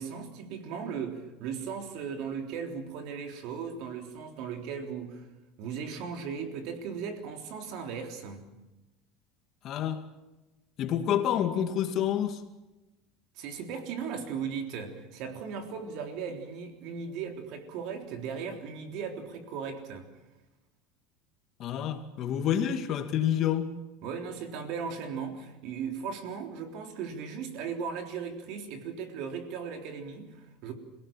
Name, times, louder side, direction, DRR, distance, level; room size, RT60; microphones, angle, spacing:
voice 1, 0.0-5.3 5.6-8.5 13.4-20.1 24.0-30.7, right 6 dB, 60° right, 5 dB, 3.6 m, -37 dB
voice 2, 9.6-10.0 10.8-12.4 21.6-23.7, left 10 dB, 45° left, 6 dB, 2.3 m, -28 dB
27.0 x 18.0 x 7.5 m, 1.0 s
supercardioid pair, 130°, 0 cm